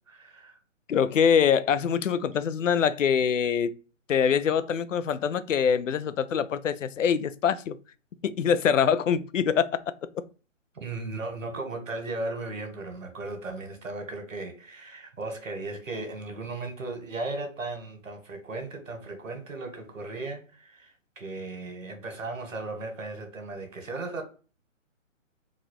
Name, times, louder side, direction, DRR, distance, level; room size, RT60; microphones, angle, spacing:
voice 1, 0.1-0.6 10.7-24.2, right 2 dB, 80° right, 1.6 m, -36 dB
voice 2, 0.9-3.7 4.1-7.7 8.2-9.7, left 7 dB, 75° left, 0.6 m, -24 dB
4.0 x 2.5 x 4.5 m
hypercardioid pair, 150°, 39 cm